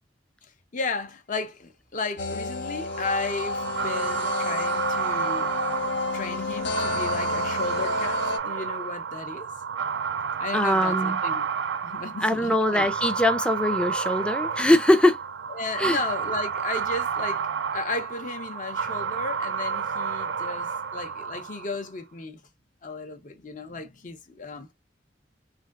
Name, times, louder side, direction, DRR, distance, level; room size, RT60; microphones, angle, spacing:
voice 1, 0.7-5.5 6.1-9.5 10.4-11.4 11.8-12.9 15.5-17.5 17.7-22.4 22.8-24.7, left 3 dB, 45° left, 0.7 m, -34 dB
sound 1, 2.2-8.4, left 3 dB, 80° left, 0.7 m, -30 dB
sound 2, 2.9-21.8, right 6 dB, 80° right, 0.4 m, -30 dB
voice 2, 10.5-11.2 12.2-15.2 15.8-16.0, left 1 dB, 5° left, 0.4 m, -22 dB
3.4 x 2.6 x 2.4 m
head